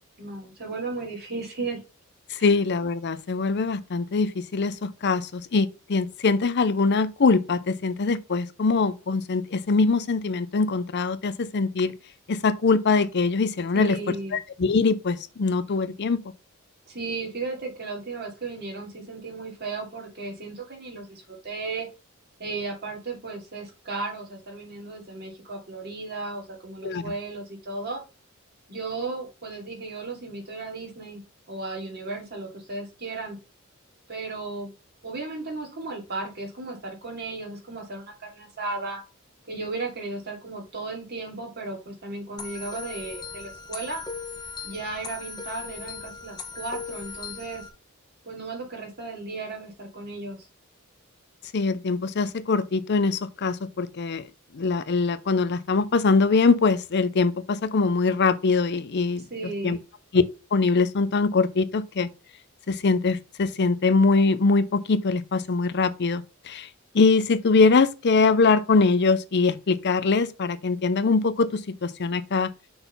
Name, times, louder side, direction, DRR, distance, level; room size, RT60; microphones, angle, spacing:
voice 1, 0.2-1.8 2.4-2.5 13.7-14.4 16.9-21.9 22.4-28.0 28.7-31.2 31.5-33.4 34.1-34.7 35.0-39.0 39.4-44.0 44.6-47.6 48.2-50.5 59.3-59.8, right 3 dB, 50° right, 2.7 m, -35 dB
voice 2, 2.3-11.9 12.3-14.0 14.3-16.2 26.8-27.1 51.5-54.3 54.5-59.2 59.6-59.8 60.1-60.2 60.5-62.1 62.7-66.7 66.9-72.5, left 4 dB, 55° left, 0.5 m, -23 dB
sound 1, 42.4-47.7, left 4 dB, 20° left, 1.0 m, -38 dB
6.0 x 4.0 x 5.4 m
head